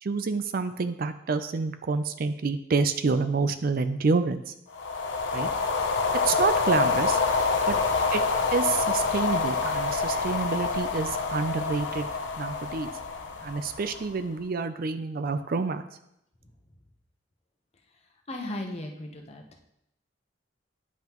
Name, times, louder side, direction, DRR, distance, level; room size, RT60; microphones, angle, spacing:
voice 1, 0.0-4.5 5.3-5.5 6.2-7.2 7.7-7.8 8.1-8.2 8.5-12.1 12.4-12.9 13.4-15.8, right 4 dB, 50° right, 9 dB, 0.4 m, -28 dB
sound 1, 4.7-14.2, left 4 dB, 85° left, 0.7 m, -27 dB
voice 2, 18.3-19.4, left 1 dB, 35° left, 2 dB, 0.9 m, -36 dB
9.5 x 5.5 x 3.0 m, 0.80 s
head